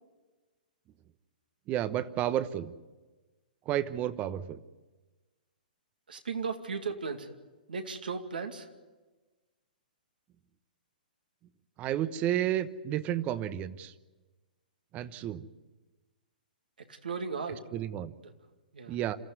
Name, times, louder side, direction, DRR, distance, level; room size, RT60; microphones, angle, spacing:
voice 1, 1.7-2.7 3.7-4.6 11.8-13.9 14.9-15.4 17.7-18.1 18.9-19.2, right 11 dB, 30° right, 14 dB, 1.0 m, -31 dB
voice 2, 6.1-7.3 7.7-8.7 16.9-17.6 18.7-19.0, right 5 dB, 75° right, 6 dB, 2.4 m, -36 dB
27.0 x 14.5 x 9.4 m, 1.2 s
figure-of-eight pair, 120°, 5 cm